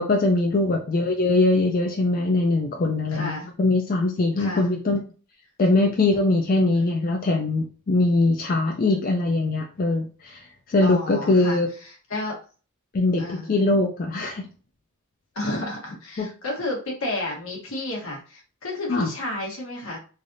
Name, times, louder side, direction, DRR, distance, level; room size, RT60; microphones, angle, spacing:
voice 1, 0.0-5.0 5.6-10.4 10.7-11.7 12.9-14.5 16.2-16.3 18.9-19.1, left 2 dB, 40° left, 1 dB, 0.4 m, -22 dB
voice 2, 3.1-3.5 4.4-4.7 6.7-6.9 8.8-9.0 10.8-12.4 13.2-13.5 15.3-20.0, left 2 dB, 75° left, -1 dB, 1.2 m, -32 dB
3.3 x 2.4 x 2.6 m, 0.37 s
head